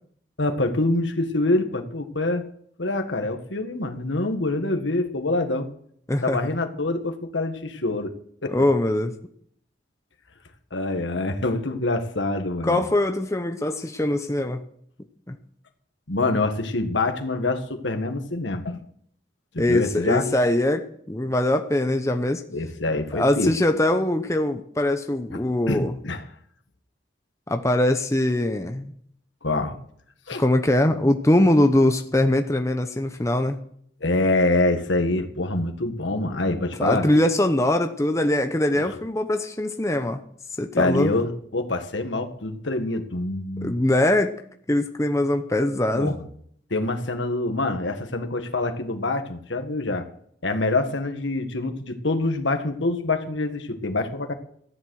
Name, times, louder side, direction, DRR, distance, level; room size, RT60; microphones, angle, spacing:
voice 1, 0.4-2.4 2.8-5.7 6.2-8.1 8.4-8.5 10.7-12.8 16.1-18.8 19.5-20.3 22.5-23.5 25.3-25.4 25.7-26.2 29.4-29.8 30.3-30.4 34.0-37.1 38.7-39.0 40.7-43.7 45.9-46.3 46.7-50.1 50.4-54.3, left 2 dB, 80° left, 6 dB, 1.6 m, -25 dB
voice 2, 6.1-6.5 8.5-9.1 12.6-14.6 15.3-15.4 19.6-22.4 22.9-26.0 27.5-28.9 30.4-33.6 36.8-40.2 40.6-41.1 43.6-44.4 44.7-46.1, left 1 dB, 15° left, 6 dB, 0.7 m, -22 dB
14.0 x 10.5 x 6.4 m, 0.65 s
head